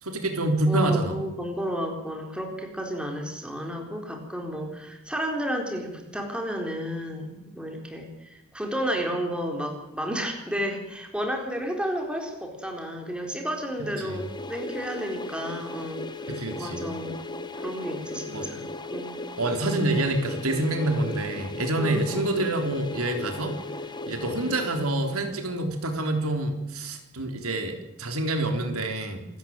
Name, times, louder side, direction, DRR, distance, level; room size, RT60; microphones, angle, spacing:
voice 1, 0.0-1.2 13.8-14.2 16.3-16.9 18.3-18.5 19.4-23.5 24.1-29.2, right 1 dB, 90° right, 5 dB, 3.8 m, -27 dB
voice 2, 0.7-16.0 16.6-17.2 17.5-18.6 18.9-19.1 21.8-22.0, equal, 5° right, 2 dB, 4.2 m, -32 dB
sound 1, 13.8-25.6, left 2 dB, 20° left, 1.3 m, -37 dB
27.0 x 13.5 x 9.1 m, 0.91 s
head